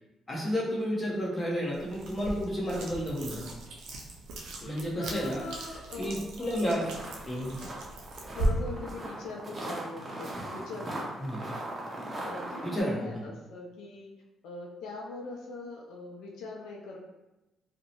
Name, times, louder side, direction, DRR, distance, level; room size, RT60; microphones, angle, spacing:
voice 1, 0.3-3.4 4.6-5.4 6.0-6.9 7.3-7.6 11.2-11.4 12.7-13.0, equal, 20° left, -5 dB, 0.8 m, -31 dB
sound 1, 1.7-8.5, right 1 dB, 90° right, 0.4 m, -38 dB
voice 2, 5.0-6.7 8.3-11.1 12.2-14.1 14.4-17.0, left 3 dB, 85° left, -1 dB, 0.4 m, -41 dB
sound 2, 6.8-12.8, right 1 dB, 30° right, 0.6 m, -39 dB
2.6 x 2.1 x 2.7 m, 1.0 s
cardioid pair, 90°, 0 cm